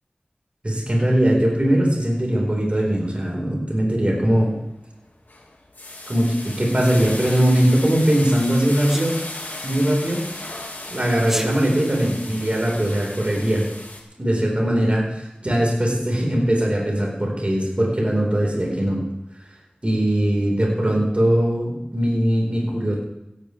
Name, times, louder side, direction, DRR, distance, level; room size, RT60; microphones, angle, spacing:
voice 1, 0.6-4.5 6.1-9.2 9.6-10.2 10.9-13.7 14.2-19.1 19.8-22.9, right 1 dB, 40° right, -2 dB, 4.9 m, -20 dB
sound 1, 4.2-4.6 5.0-14.0, left 2 dB, 75° left, 2.3 m, -35 dB
Sneeze, 8.9-9.1 11.2-11.5, equal, 10° right, 1.2 m, -28 dB
16.5 x 14.0 x 3.5 m, 0.91 s
wide cardioid pair, 55°, 3 cm